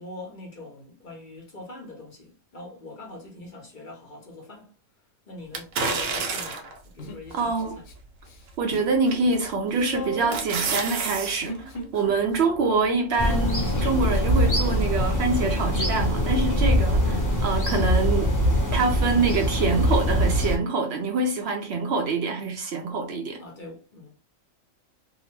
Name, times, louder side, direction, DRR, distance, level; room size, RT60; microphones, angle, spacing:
voice 1, 0.0-4.7 5.3-7.8 23.4-24.1, left 2 dB, 45° left, 0.8 m, -43 dB
sound 1, 5.5-6.8 7.4-7.5 9.1-9.4 9.8-11.4 11.7-11.8, right 4 dB, 90° right, 1.0 m, -28 dB
Human voice, 7.0-7.9 8.2-9.0 9.2-14.4, equal, 75° left, 1.1 m, -38 dB
voice 2, 7.3-7.7 8.6-11.5 11.9-18.3 18.7-23.4, right 3 dB, 65° right, 0.7 m, -25 dB
sound 2, 13.2-20.6, equal, 25° left, 0.4 m, -23 dB
2.8 x 2.1 x 3.0 m
omnidirectional pair, 1.3 m